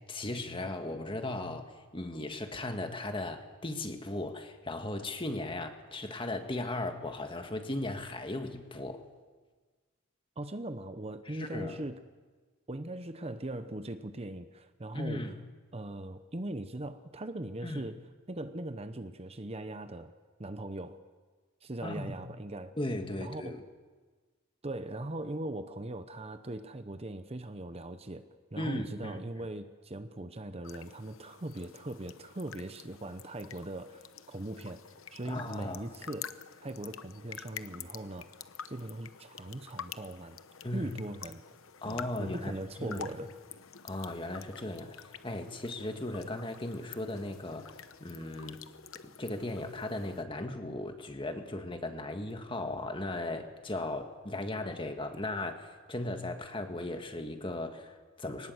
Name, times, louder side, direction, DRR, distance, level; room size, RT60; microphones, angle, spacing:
voice 1, 0.0-9.1 11.3-11.8 14.9-15.3 17.6-17.8 21.8-22.2 22.8-23.6 28.6-29.2 35.2-35.9 40.6-40.9 41.8-42.5 42.8-43.0 43.8-48.6 49.0-58.5, left 2 dB, 25° left, 6 dB, 1.7 m, -37 dB
voice 2, 10.4-12.0 12.7-15.3 15.7-18.0 18.3-20.1 20.4-21.0 21.6-22.7 23.2-23.6 24.6-34.8 35.1-36.3 36.6-38.3 38.7-40.4 40.7-41.4 41.8-43.3, right 1 dB, 30° right, 10 dB, 0.8 m, -40 dB
sound 1, 30.6-50.2, left 8 dB, 75° left, 0.9 m, -48 dB
23.0 x 19.0 x 8.0 m, 1.4 s
head